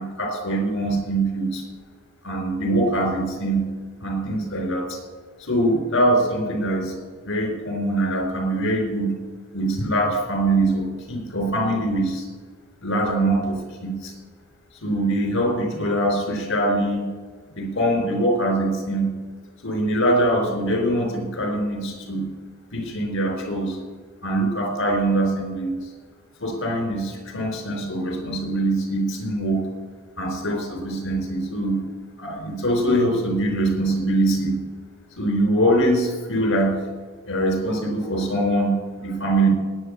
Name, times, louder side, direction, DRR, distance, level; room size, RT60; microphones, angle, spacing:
voice 1, 0.0-1.6 2.2-3.7 4.0-5.0 5.4-9.2 9.5-12.2 12.8-14.1 14.8-17.1 17.5-19.1 19.6-22.3 22.7-23.8 24.2-25.9 26.4-29.7 30.2-31.8 32.2-34.6 35.2-36.8 37.3-39.5, right 1 dB, 60° left, 3 dB, 4.5 m, -23 dB
19.0 x 9.2 x 8.2 m, 1.5 s
head